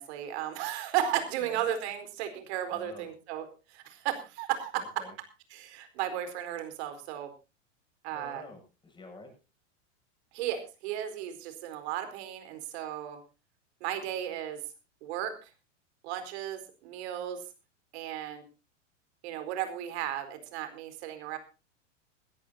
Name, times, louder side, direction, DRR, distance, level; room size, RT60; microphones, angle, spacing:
voice 1, 0.0-4.8 5.5-7.3 8.0-8.4 10.3-13.2 13.8-14.6 15.0-15.5 16.0-17.4 17.9-18.4 19.2-21.4, right 11 dB, 60° right, 9 dB, 4.5 m, -35 dB
voice 2, 2.7-3.1 4.8-5.1 8.1-9.3, left 3 dB, 15° left, 3 dB, 7.5 m, -49 dB
20.5 x 14.5 x 2.8 m, 0.31 s
hypercardioid pair, 120°, 37 cm